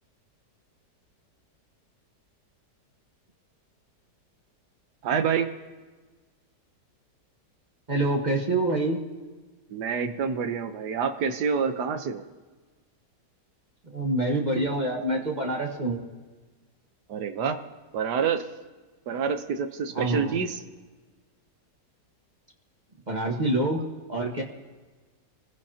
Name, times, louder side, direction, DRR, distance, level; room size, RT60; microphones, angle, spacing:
voice 1, 5.0-5.5 9.7-12.2 17.1-17.6 17.9-18.4 19.1-20.6, right 6 dB, 70° right, 8 dB, 1.5 m, -27 dB
voice 2, 7.9-9.0 13.9-16.0 19.9-20.4 23.1-23.8 24.1-24.4, right 2 dB, 25° right, 0 dB, 1.6 m, -26 dB
28.0 x 15.5 x 2.9 m, 1.3 s
omnidirectional pair, 1.8 m